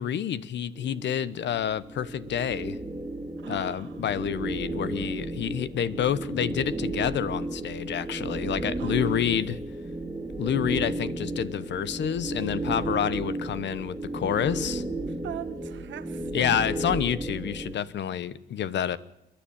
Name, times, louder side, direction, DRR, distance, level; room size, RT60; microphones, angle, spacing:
voice 1, 0.0-2.8 3.5-9.6 10.4-14.8 16.3-19.0, left 9 dB, 65° left, 1.0 m, -28 dB
sound 1, 0.8-17.7, right 2 dB, 10° right, 3.1 m, -33 dB
voice 2, 3.4-3.9 8.8-9.1 15.2-16.6, right 10 dB, 70° right, 1.5 m, -40 dB
30.0 x 10.0 x 8.7 m
cardioid pair, 90°, 20 cm